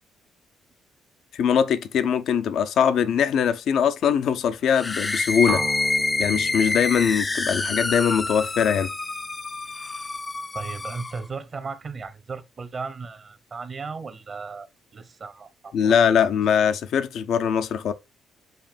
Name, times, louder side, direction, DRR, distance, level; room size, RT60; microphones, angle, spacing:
voice 1, 1.3-5.6 6.2-8.9 15.7-17.9, left 7 dB, 70° left, 0.7 m, -22 dB
sound 1, 4.7-11.2, left 3 dB, 25° left, 0.5 m, -27 dB
sound 2, 5.5-9.4, right 4 dB, 30° right, 0.6 m, -37 dB
voice 2, 10.5-14.7 14.9-16.0, right 4 dB, 45° right, 0.9 m, -36 dB
7.7 x 2.6 x 5.1 m
cardioid pair, 90°, 0 cm